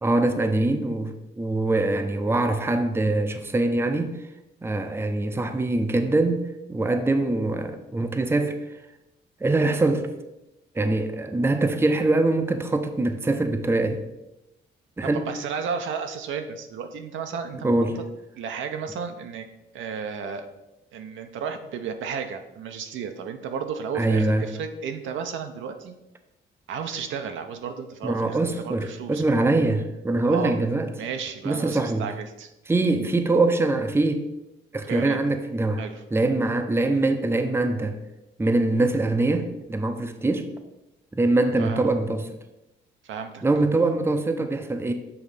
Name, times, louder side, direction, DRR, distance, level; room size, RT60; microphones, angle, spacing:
voice 1, 0.0-4.1 4.6-6.4 6.7-8.6 9.4-10.1 10.7-14.0 15.0-15.3 17.6-18.0 23.9-24.5 28.0-30.9 31.4-32.1 32.7-34.3 34.7-35.8 36.1-38.0 38.4-40.5 41.1-42.3 43.4-44.9, right 2 dB, 10° right, 7 dB, 0.6 m, -23 dB
voice 2, 15.0-17.7 18.3-19.5 19.7-20.5 20.9-25.9 26.7-28.4 28.6-29.2 30.3-30.5 31.0-32.5 34.9-35.2 35.8-36.0 41.6-41.9 43.0-43.4, right 6 dB, 75° right, 6 dB, 0.7 m, -33 dB
7.1 x 3.1 x 5.1 m, 0.94 s
cardioid pair, 90°, 20 cm